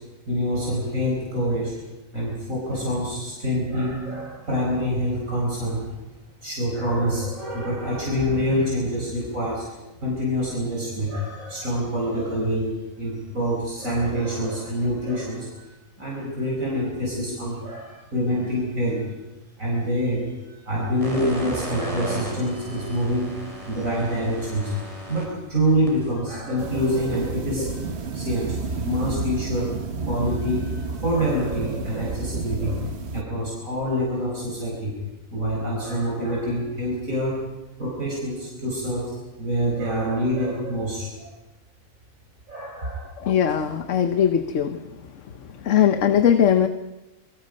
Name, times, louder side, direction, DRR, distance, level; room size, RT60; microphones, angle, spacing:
voice 1, 0.3-1.9 2.1-6.0 6.4-9.7 10.0-12.7 13.0-15.7 16.0-19.0 19.6-24.7 25.1-29.8 30.0-34.9 35.3-37.4 37.8-41.3 42.5-43.1, equal, 90° right, -4 dB, 5.4 m, -26 dB
sound 1, 21.0-27.1, right 1 dB, 25° right, 6.1 m, -37 dB
sound 2, 26.6-33.2, right 4 dB, 55° right, 1.5 m, -31 dB
voice 2, 43.2-44.8 45.4-46.7, left 9 dB, 70° left, 9 dB, 1.3 m, -20 dB
27.5 x 23.5 x 5.4 m, 1.1 s
omnidirectional pair, 1.4 m